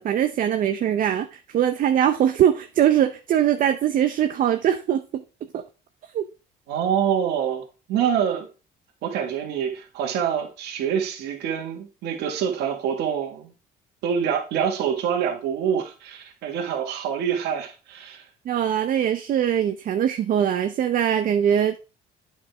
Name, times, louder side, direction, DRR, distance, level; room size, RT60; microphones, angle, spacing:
voice 1, 0.0-5.2 5.5-5.6 6.1-6.2 18.5-21.8, right 10 dB, 55° right, 0.6 m, -22 dB
voice 2, 6.7-8.5 9.0-13.5 14.0-18.2, right 8 dB, 80° right, 1.7 m, -26 dB
8.8 x 5.0 x 3.4 m
cardioid pair, 110°, 17 cm